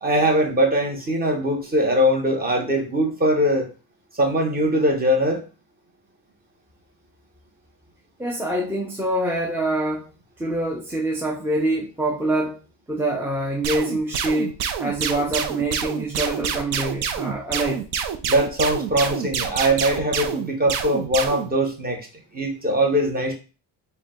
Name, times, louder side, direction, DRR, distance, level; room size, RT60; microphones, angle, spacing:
voice 1, 0.0-3.7 4.1-5.5 18.2-22.0 22.3-23.4, equal, 20° right, 0.9 m, -21 dB
voice 2, 8.2-10.1 10.4-12.6 12.9-17.8, right 1 dB, 5° right, 0.5 m, -25 dB
sound 1, 13.6-21.5, right 8 dB, 65° right, 0.6 m, -27 dB
4.3 x 2.2 x 3.7 m
cardioid pair, 135°, 42 cm